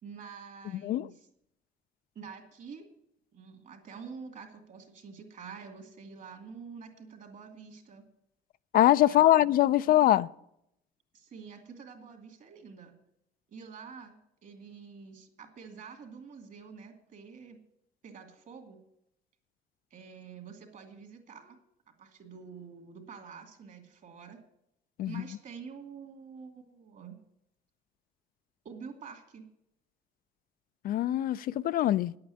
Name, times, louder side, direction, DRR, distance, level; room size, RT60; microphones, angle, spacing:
voice 1, 0.0-1.3 2.1-2.9 3.3-8.0 9.1-9.5 9.8-10.0 11.1-12.9 13.5-14.1 14.4-17.6 18.0-18.8 19.9-21.6 22.0-24.4 25.1-27.2 28.6-29.4, right 5 dB, 50° right, 2.6 m, -47 dB
voice 2, 8.7-10.3 25.0-25.2 30.8-32.1, left 13 dB, 60° left, 0.4 m, -23 dB
10.0 x 8.6 x 8.4 m
cardioid pair, 110°, 17 cm